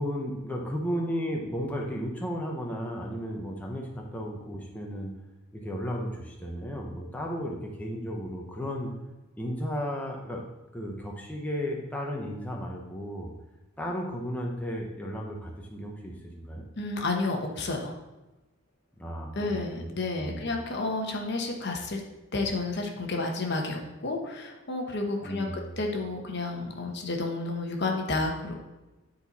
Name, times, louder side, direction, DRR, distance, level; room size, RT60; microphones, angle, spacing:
voice 1, 0.0-5.1 5.5-8.9 9.4-10.4 10.7-13.3 13.8-16.6 19.0-20.5 25.2-25.7, equal, 5° left, -1 dB, 0.8 m, -34 dB
voice 2, 16.8-17.9 19.4-22.0 22.3-25.5 25.8-28.6, left 2 dB, 55° left, 2 dB, 1.0 m, -31 dB
9.8 x 4.2 x 4.1 m, 1.0 s
head